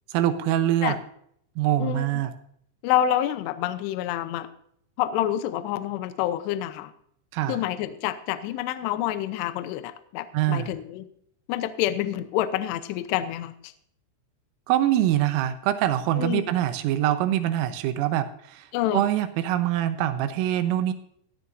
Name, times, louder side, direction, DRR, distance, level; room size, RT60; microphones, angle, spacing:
voice 1, 0.1-1.0 1.6-2.3 7.3-7.6 10.3-10.8 14.7-18.7 18.9-20.9, right 12 dB, 85° right, 10 dB, 3.5 m, -24 dB
voice 2, 1.8-2.2 2.8-4.5 5.0-6.9 7.5-11.1 11.5-13.7 16.2-16.4 18.7-19.0, left 12 dB, 85° left, 11 dB, 2.4 m, -27 dB
16.5 x 11.0 x 2.6 m, 0.68 s
omnidirectional pair, 5.8 m